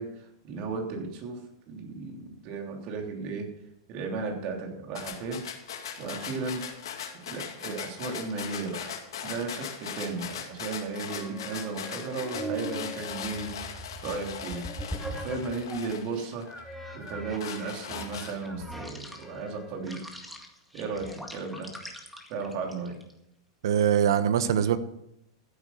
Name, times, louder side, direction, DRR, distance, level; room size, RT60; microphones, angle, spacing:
voice 1, 0.0-3.5 3.9-5.5 6.0-6.7 7.3-8.9 9.2-20.0 20.7-21.8 22.3-23.0, right 4 dB, 45° right, 2 dB, 3.2 m, -35 dB
sound 1, 5.0-16.6 17.1-18.6, left 8 dB, 85° left, 2.3 m, -39 dB
sound 2, 10.9-15.9 16.5-23.1, right 1 dB, ahead, 1.9 m, -41 dB
voice 2, 23.6-24.8, right 9 dB, 75° right, 13 dB, 1.1 m, -23 dB
14.5 x 8.5 x 5.7 m, 0.79 s
hypercardioid pair, 130°, 2 cm